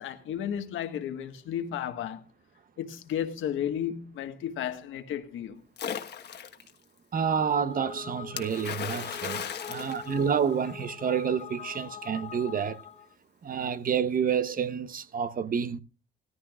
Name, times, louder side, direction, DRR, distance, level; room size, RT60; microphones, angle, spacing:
voice 1, 0.0-2.2 2.8-5.6, left 9 dB, 80° left, 1.6 m, -33 dB
Splash splatter, 5.8-6.7 8.4-10.8, left 8 dB, 60° left, 1.4 m, -37 dB
voice 2, 7.1-12.8 13.4-15.8, right 7 dB, 45° right, 0.9 m, -29 dB
sound 1, 7.4-13.1, left 7 dB, 35° left, 0.9 m, -43 dB
17.0 x 14.0 x 2.4 m
cardioid pair, 90°, 20 cm